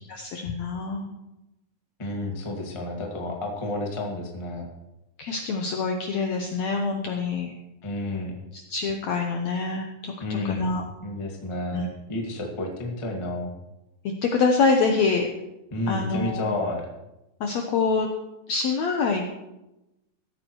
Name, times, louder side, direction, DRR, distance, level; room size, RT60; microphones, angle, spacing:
voice 1, 0.1-1.1 5.2-7.5 8.5-10.8 11.7-11.8 14.2-15.3 15.9-16.5 17.4-18.1 18.5-19.3, left 4 dB, 80° left, 3 dB, 1.6 m, -25 dB
voice 2, 2.0-4.7 7.8-8.4 10.2-10.7 11.0-13.5 15.7-16.9, left 1 dB, 30° left, 0 dB, 0.5 m, -31 dB
16.0 x 13.0 x 3.1 m, 0.95 s
omnidirectional pair, 4.3 m